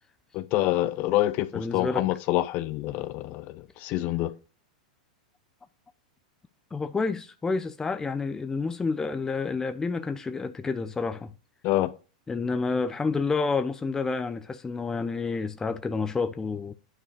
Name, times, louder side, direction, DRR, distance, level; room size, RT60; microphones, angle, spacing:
voice 1, 0.3-4.3 11.6-11.9, left 15 dB, 45° left, 1.0 m, -26 dB
voice 2, 1.5-2.1 6.7-11.3 12.3-16.7, left 4 dB, 15° left, 0.8 m, -29 dB
9.9 x 5.5 x 5.0 m
hypercardioid pair, 105°, 4 cm